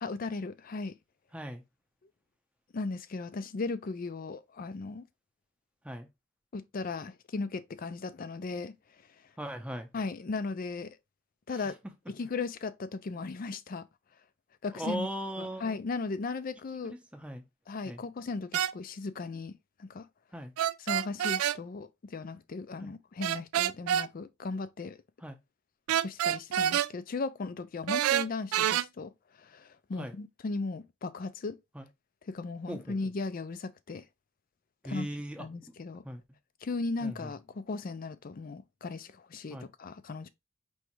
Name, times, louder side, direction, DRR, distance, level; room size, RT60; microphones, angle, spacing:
voice 1, 0.0-1.0 2.7-5.1 6.5-8.8 9.9-11.0 11.5-11.8 12.1-13.9 14.6-15.1 15.4-17.0 17.7-19.5 19.8-20.1 20.8-25.0 25.9-31.6 32.3-34.1 34.8-35.1 35.4-36.0 36.6-40.3, left 3 dB, 40° left, 0.4 m, -37 dB
voice 2, 1.3-1.6 5.8-6.1 9.4-9.9 11.5-11.6 14.7-15.7 16.8-17.4 17.8-18.0 20.3-20.5 22.8-22.9 25.2-25.4 30.0-30.1 31.7-31.9 32.7-33.0 34.8-35.5 36.0-36.2 37.0-37.3 39.5-39.7, right 1 dB, 5° right, 0.7 m, -39 dB
sound 1, 18.5-18.7 20.6-21.6 23.2-24.1 25.9-26.9 27.9-28.8, right 11 dB, 85° right, 0.3 m, -27 dB
4.7 x 3.1 x 3.0 m
head